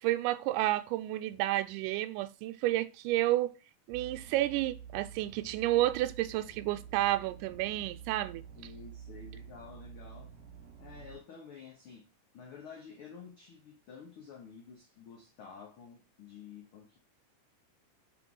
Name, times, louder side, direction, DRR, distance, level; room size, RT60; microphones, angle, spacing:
voice 1, 0.0-3.6 3.9-8.4, right 15 dB, 85° right, 2.1 m, -31 dB
sound 1, 3.9-11.2, right 8 dB, 65° right, 1.8 m, -49 dB
voice 2, 8.6-10.3 10.8-12.1 12.3-17.0, left 6 dB, 80° left, 1.2 m, -50 dB
5.0 x 4.3 x 5.3 m
omnidirectional pair, 3.8 m